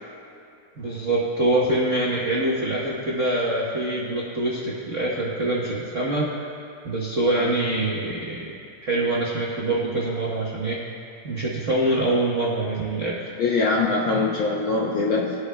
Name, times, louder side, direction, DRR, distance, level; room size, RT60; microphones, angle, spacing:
voice 1, 0.8-6.3 6.8-8.5 8.8-10.8 11.2-13.3, right 2 dB, 85° right, -5 dB, 0.6 m, -24 dB
voice 2, 13.4-15.4, left 3 dB, 80° left, -2 dB, 1.1 m, -23 dB
21.5 x 8.1 x 2.3 m, 2.5 s
omnidirectional pair, 3.3 m